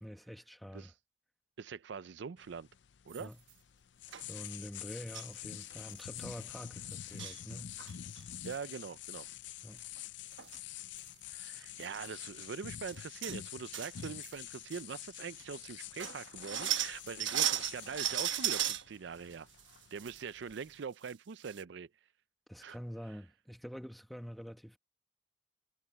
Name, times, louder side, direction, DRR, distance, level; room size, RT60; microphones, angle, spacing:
voice 1, 0.0-0.9 3.2-3.4 4.2-7.8 9.6-9.9 11.5-11.6 22.5-24.8, equal, ahead, 1.4 m, -46 dB
voice 2, 1.6-2.7 3.1-3.3 8.4-9.3 11.3-19.5 19.9-21.9 22.6-22.8, right 6 dB, 70° right, 0.4 m, -43 dB
sound 1, 2.4-20.8, left 11 dB, 75° left, 0.5 m, -47 dB
sound 2, 3.1-3.5 4.1-4.2 5.1-5.3 5.7-5.8 6.0-6.2 6.9-7.4 7.8-8.2 10.0-10.1 10.3-10.6 11.0-11.1 11.8-12.0 12.4-12.5 12.9-13.4 13.7-14.4 14.7-14.8 15.4-15.5 15.8-18.8 19.3-20.2 20.5-20.6 21.1-21.2 21.4-21.6, right 11 dB, 90° right, 1.2 m, -36 dB
head